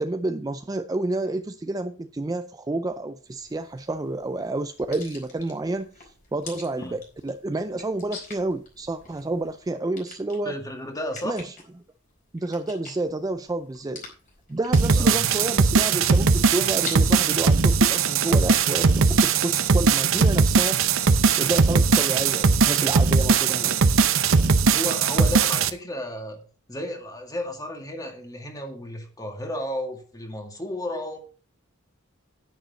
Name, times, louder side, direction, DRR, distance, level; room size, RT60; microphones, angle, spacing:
voice 1, 0.0-10.5 11.2-11.6 12.3-14.0 14.5-20.8 21.4-23.8, right 2 dB, 15° right, 0.4 m, -29 dB
sound 1, 3.3-17.2, left 3 dB, 40° left, 4.7 m, -45 dB
voice 2, 10.4-11.4 14.9-15.3 21.7-21.9 24.6-26.4 26.7-31.2, left 1 dB, 15° left, 2.0 m, -33 dB
sound 2, 14.7-25.7, right 5 dB, 70° right, 0.8 m, -19 dB
10.0 x 9.5 x 4.0 m
head